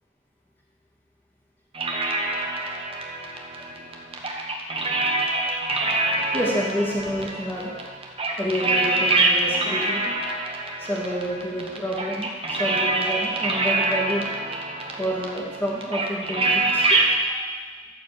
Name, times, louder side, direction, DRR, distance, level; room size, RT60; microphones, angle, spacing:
sound 1, 1.7-17.2, right 2 dB, 30° right, 1.1 m, -25 dB
voice 1, 6.3-7.7 8.4-10.2 10.8-14.3 14.8-17.0 17.3-17.5, equal, 10° left, -4 dB, 2.3 m, -29 dB
14.0 x 4.8 x 6.9 m, 1.4 s
head